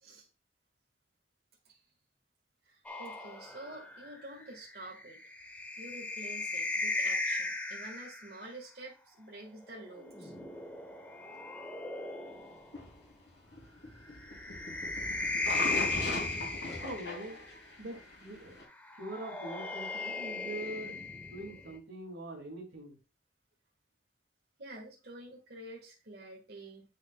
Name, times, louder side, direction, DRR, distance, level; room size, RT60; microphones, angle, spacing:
voice 1, 2.7-5.2 5.8-10.3 24.6-26.8, right 2 dB, 55° right, -1 dB, 1.7 m, -48 dB
sound 1, 2.8-8.4 9.8-12.7 14.1-17.6 18.8-21.8, left 3 dB, 10° left, 1.0 m, -37 dB
sound 2, 12.7-18.6, left 2 dB, 80° left, 3.2 m, -39 dB
voice 2, 16.8-17.4 17.8-18.6 19.0-23.0, right 1 dB, 80° right, 3 dB, 2.4 m, -43 dB
8.6 x 6.4 x 2.3 m, 0.31 s
head